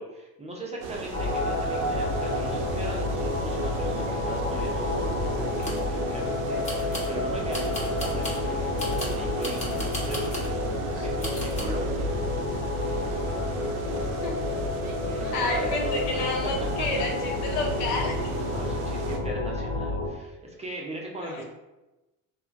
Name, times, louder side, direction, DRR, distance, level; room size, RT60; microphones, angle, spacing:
voice 1, 0.0-12.1 14.9-16.5 18.5-21.4, right 1 dB, 15° right, -3 dB, 0.4 m, -39 dB
sound 1, 0.8-19.2, right 4 dB, 90° right, 0.5 m, -36 dB
sound 2, 1.1-20.1, left 2 dB, 50° left, 1.2 m, -30 dB
sound 3, 5.3-5.9 6.6-7.1 7.5-8.4 8.8-10.5 11.2-11.6, left 1 dB, 15° left, 0.9 m, -36 dB
voice 2, 10.9-11.3 14.2-14.3 15.3-18.2 21.2-21.4, left 3 dB, 75° left, 1 dB, 0.8 m, -30 dB
3.0 x 2.1 x 2.4 m, 1.0 s
supercardioid pair, 95°, 40 cm